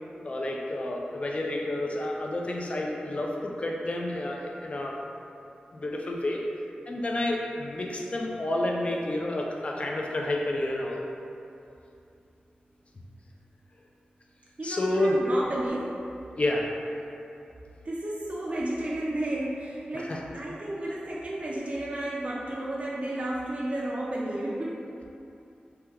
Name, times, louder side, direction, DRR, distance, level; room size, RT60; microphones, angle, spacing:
voice 1, 0.2-4.9 5.7-6.4 6.9-11.1 14.6-15.2 16.3-16.7 19.9-20.2, left 1 dB, 40° left, -1 dB, 0.3 m, -30 dB
voice 2, 14.6-16.0 17.8-24.9, right 1 dB, 40° right, -5 dB, 0.3 m, -32 dB
2.8 x 2.2 x 3.4 m, 2.7 s
wide cardioid pair, 100°, 3 cm